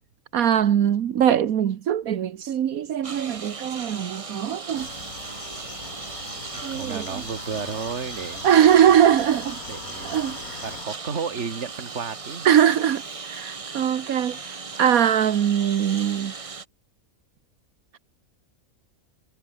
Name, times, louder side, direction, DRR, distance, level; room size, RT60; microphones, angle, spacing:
voice 1, 0.3-4.9 6.6-7.2 8.4-9.6 10.0-10.6 12.4-16.3, right 9 dB, 80° right, 1.4 m, -21 dB
Engine, 3.0-16.7, right 4 dB, 30° right, 0.9 m, -37 dB
sound 1, 4.7-10.9, left 7 dB, 85° left, 2.0 m, -41 dB
voice 2, 6.5-8.5 9.7-10.2 10.6-12.5, right 6 dB, 55° right, 2.0 m, -33 dB
omnidirectional pair, 1.5 m